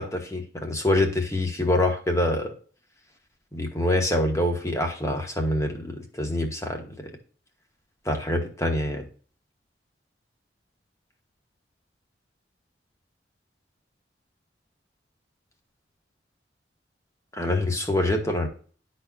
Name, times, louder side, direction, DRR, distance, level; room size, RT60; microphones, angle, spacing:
voice 1, 0.0-2.5 3.5-7.1 8.0-9.0 17.3-18.5, left 1 dB, 15° left, 3 dB, 1.2 m, -25 dB
12.0 x 4.3 x 2.4 m, 0.41 s
head